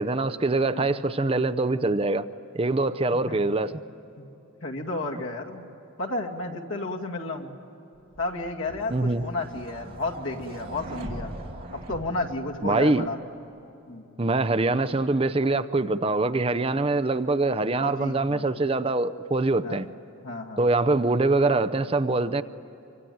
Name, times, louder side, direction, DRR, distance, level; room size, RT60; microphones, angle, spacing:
voice 1, 0.0-2.2 2.5-3.7 8.9-9.2 12.6-13.1 14.2-19.9 20.6-22.4, right 2 dB, 25° right, 11 dB, 0.5 m, -24 dB
voice 2, 4.6-5.6 6.0-7.5 8.2-11.3 11.7-13.2 13.9-14.1 17.8-18.5 19.6-19.8 20.2-20.7, left 2 dB, 80° left, 0 dB, 2.3 m, -32 dB
sound 1, 8.1-13.1, right 1 dB, 45° right, 2.8 m, -41 dB
25.0 x 24.5 x 9.3 m, 2.9 s
head